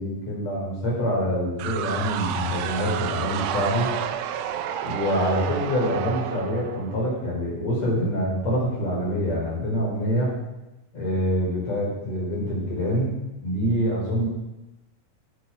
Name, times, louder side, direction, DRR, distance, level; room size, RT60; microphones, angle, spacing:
voice 1, 0.0-3.9 4.8-10.3 10.9-13.2 13.4-14.3, equal, 50° left, -3 dB, 5.8 m, -25 dB
sound 1, 1.6-7.3, right 9 dB, 75° right, 1.6 m, -30 dB
18.5 x 8.7 x 5.0 m, 0.99 s
omnidirectional pair, 3.8 m